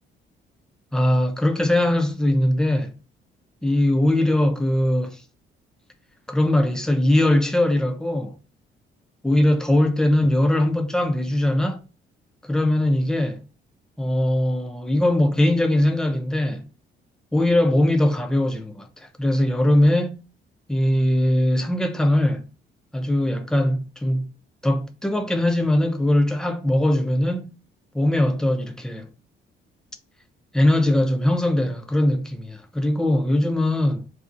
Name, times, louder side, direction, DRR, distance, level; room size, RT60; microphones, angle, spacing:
voice 1, 0.9-3.0 3.6-5.2 6.3-8.4 9.2-11.8 12.5-13.4 14.0-16.7 17.3-20.2 20.7-22.5 22.9-24.3 24.6-27.5 27.9-29.1 30.5-34.1, left 1 dB, 5° left, 0.4 m, -21 dB
2.6 x 2.0 x 2.4 m
cardioid pair, 90°, 20 cm